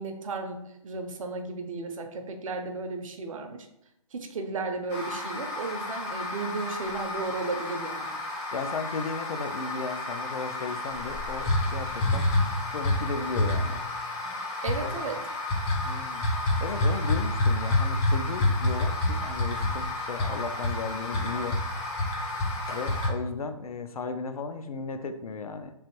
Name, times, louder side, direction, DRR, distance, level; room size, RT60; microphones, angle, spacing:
voice 1, 0.0-3.7 4.1-8.2 14.6-15.2, right 3 dB, 65° right, 5 dB, 0.6 m, -34 dB
sound 1, 4.9-23.1, left 2 dB, 20° left, 0.5 m, -29 dB
voice 2, 8.5-12.3 12.7-13.8 14.8-15.0 15.8-16.3 16.6-21.6 22.7-25.7, left 4 dB, 80° left, 8 dB, 0.4 m, -35 dB
3.3 x 2.5 x 2.9 m, 0.81 s
hypercardioid pair, 145°, 18 cm